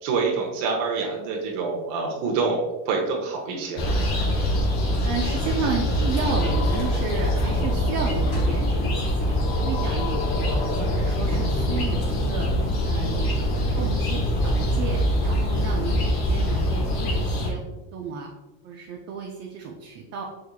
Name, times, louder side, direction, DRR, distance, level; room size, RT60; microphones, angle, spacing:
voice 1, 0.0-3.9, right 4 dB, 70° right, -1 dB, 1.0 m, -26 dB
sound 1, 3.8-17.5, equal, 45° left, 1.1 m, -24 dB
sound 2, 4.4-11.9, left 4 dB, 80° left, 1.2 m, -37 dB
voice 2, 5.0-13.3 13.8-18.3 18.6-20.2, right 5 dB, 35° right, 0 dB, 0.4 m, -33 dB
4.6 x 3.5 x 2.3 m, 1.1 s
cardioid pair, 135°, 48 cm